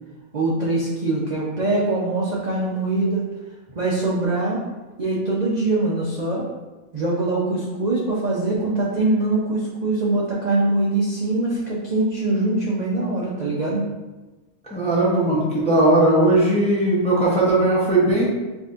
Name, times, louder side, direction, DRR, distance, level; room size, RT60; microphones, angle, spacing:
voice 1, 0.3-3.2 3.8-4.6 5.0-6.5 6.9-13.8, right 2 dB, 55° right, -5 dB, 0.4 m, -23 dB
voice 2, 14.7-18.3, right 1 dB, 10° left, -5 dB, 0.5 m, -18 dB
6.1 x 2.6 x 2.5 m, 1.2 s
omnidirectional pair, 1.5 m